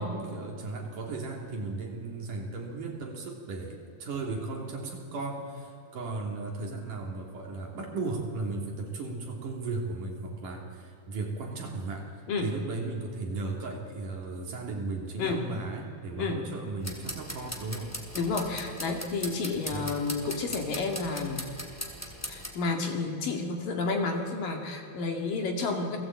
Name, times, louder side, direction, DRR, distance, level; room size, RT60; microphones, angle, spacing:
voice 1, 0.0-12.1 12.4-17.9 19.7-19.9, right 3 dB, 55° right, 0 dB, 4.4 m, -36 dB
voice 2, 15.2-15.5 16.2-16.4 18.2-21.5 22.3-26.0, left 4 dB, 60° left, 3 dB, 3.9 m, -31 dB
sound 1, 16.8-22.5, equal, 5° left, 2.4 m, -40 dB
29.0 x 20.5 x 8.6 m, 2.7 s
omnidirectional pair, 4.5 m